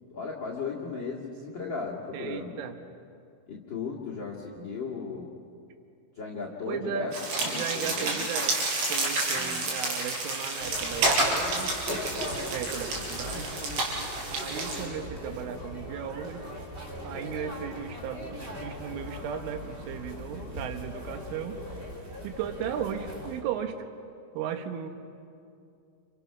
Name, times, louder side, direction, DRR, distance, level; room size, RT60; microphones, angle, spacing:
voice 1, 0.1-2.6 3.5-5.3 6.1-7.2 7.5-8.2 9.3-9.6, left 5 dB, 60° left, -1 dB, 1.2 m, -36 dB
voice 2, 2.1-2.8 6.7-7.1 7.5-8.6 8.9-11.7 12.5-13.5 14.3-16.5 17.0-21.6 22.2-23.8 24.4-24.9, right 8 dB, 75° right, 7 dB, 3.7 m, -36 dB
sound 1, 7.1-14.8, right 2 dB, 60° right, 6.2 m, -30 dB
sound 2, 10.6-23.4, left 1 dB, 15° right, 2.6 m, -39 dB
29.5 x 28.0 x 6.0 m, 2.5 s
omnidirectional pair, 5.9 m